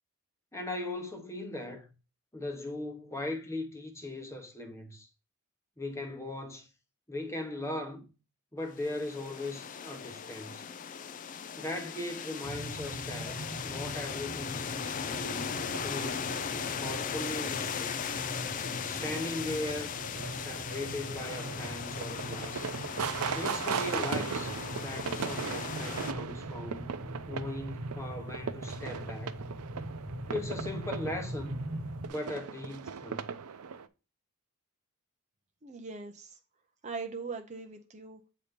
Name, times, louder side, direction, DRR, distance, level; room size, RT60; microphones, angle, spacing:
voice 1, 0.5-1.9 2.3-5.1 5.8-6.7 7.1-8.1 8.5-10.7 11.6-16.2 16.8-18.0 18.8-20.1 20.3-22.7 23.3-27.0 27.3-29.4 30.3-31.6 32.1-33.3, left 2 dB, 15° left, 1.0 m, -39 dB
sound 1, 8.7-26.1, left 7 dB, 35° left, 0.3 m, -38 dB
sound 2, 12.4-32.1, right 1 dB, 65° right, 1.5 m, -42 dB
sound 3, 21.2-33.8, right 6 dB, 90° right, 0.6 m, -38 dB
voice 2, 35.6-36.4 36.8-38.2, right 4 dB, 30° right, 0.5 m, -40 dB
8.2 x 2.8 x 5.1 m
head